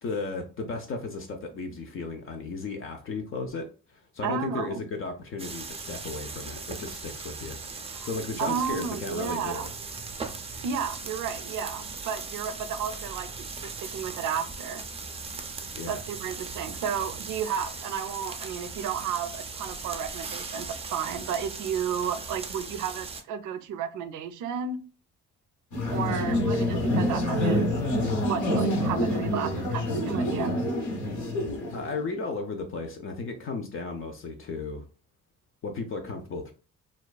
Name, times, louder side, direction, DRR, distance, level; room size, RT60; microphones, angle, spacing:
voice 1, 0.0-7.6 8.0-9.7 15.7-16.0 31.7-34.8 35.6-36.5, left 3 dB, 45° left, 0.4 m, -35 dB
voice 2, 4.2-4.8 7.9-8.1 8.4-9.7 10.6-14.8 15.9-24.8 25.9-27.8 28.3-30.5, right 7 dB, 80° right, 0.4 m, -32 dB
sound 1, 5.4-23.2, right 4 dB, 20° right, 0.4 m, -39 dB
sound 2, 25.7-32.0, left 1 dB, 75° left, 0.9 m, -27 dB
2.4 x 2.3 x 2.2 m
cardioid pair, 90°, 30 cm